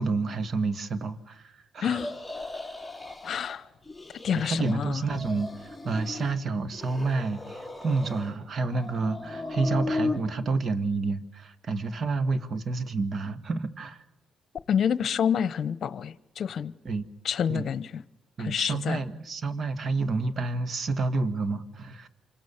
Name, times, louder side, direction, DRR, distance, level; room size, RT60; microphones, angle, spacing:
voice 1, 0.0-2.0 4.3-14.0 16.9-17.1 17.5-17.7 18.4-22.1, right 3 dB, 50° right, 1.9 m, -29 dB
voice 2, 1.8-2.1 3.2-3.6 4.2-5.0 14.7-16.7 17.2-18.0 18.4-19.0, left 8 dB, 60° left, 1.0 m, -28 dB
sound 1, 1.9-3.6 3.9-4.7 5.0-6.4 6.7-8.3 8.7-10.2, left 2 dB, ahead, 5.3 m, -36 dB
27.5 x 25.5 x 7.3 m
cardioid pair, 90°, 0 cm